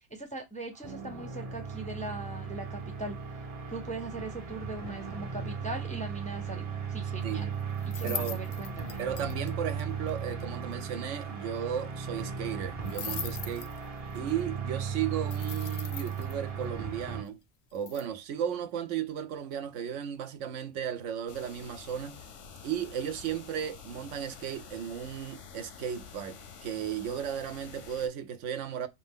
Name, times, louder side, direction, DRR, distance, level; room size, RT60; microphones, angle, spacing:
voice 1, 0.0-3.2 3.7-7.5 8.0-9.0, right 2 dB, 10° left, 0.5 m, -40 dB
sound 1, 0.7-17.2, right 6 dB, 35° right, 0.8 m, -36 dB
sound 2, 7.8-9.5 9.8-9.9 10.1-10.2 10.4-10.5 10.7-10.8 12.9-14.1 15.3-16.3 17.7-18.0, left 7 dB, 55° left, 0.6 m, -40 dB
voice 2, 8.0-8.4 9.0-13.7 14.1-17.4 17.7-22.2 22.6-28.9, right 9 dB, 85° right, 1.0 m, -35 dB
sound 3, 21.3-28.1, left 6 dB, 85° left, 1.1 m, -48 dB
4.5 x 2.6 x 3.6 m
omnidirectional pair, 1.2 m